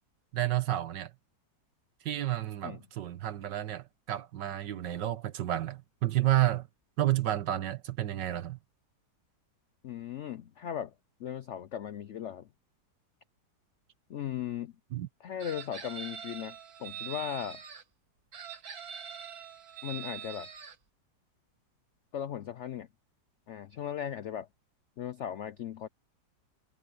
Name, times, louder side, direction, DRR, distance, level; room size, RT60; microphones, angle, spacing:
voice 1, 0.3-1.1 2.0-6.7 7.0-8.6 14.9-15.1, right 14 dB, 75° right, 1.7 m, -30 dB
voice 2, 9.8-10.9 11.2-12.5 14.1-14.7 15.2-17.6 19.8-20.5 22.1-22.9 23.5-24.5 25.0-25.9, left 10 dB, 80° left, 0.6 m, -37 dB
Chicken rooster, 15.4-17.8 18.3-20.8, right 8 dB, 55° right, 2.0 m, -43 dB
omnidirectional pair, 2.0 m